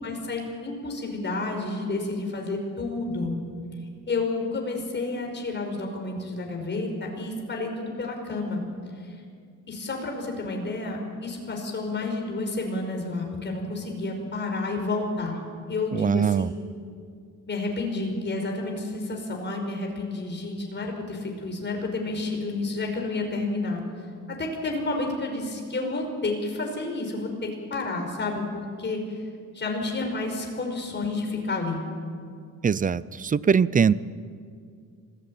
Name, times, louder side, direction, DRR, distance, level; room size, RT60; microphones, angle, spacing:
voice 1, 0.0-3.4 4.1-8.6 9.0-9.2 9.7-15.4 15.7-16.4 17.5-23.8 24.3-29.2 29.5-31.8, left 3 dB, 35° left, 2 dB, 5.3 m, -30 dB
voice 2, 15.9-16.5 32.6-33.9, right 6 dB, 25° right, 19 dB, 0.5 m, -22 dB
26.0 x 17.0 x 9.1 m, 2.2 s
cardioid pair, 125°, 32 cm